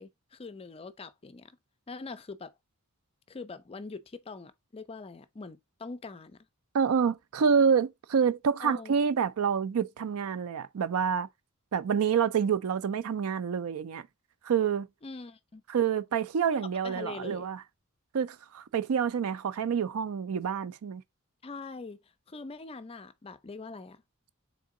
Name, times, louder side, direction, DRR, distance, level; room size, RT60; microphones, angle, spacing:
voice 1, 0.0-1.6 1.9-2.5 3.3-6.4 8.6-9.0 15.0-15.6 16.6-17.5 21.4-22.0 22.3-24.0, left 3 dB, 25° left, 0.4 m, -43 dB
voice 2, 6.7-11.3 11.7-14.0 14.4-14.9 15.7-17.6 18.1-21.0, right 7 dB, 65° right, 0.4 m, -27 dB
3.7 x 3.6 x 3.6 m
head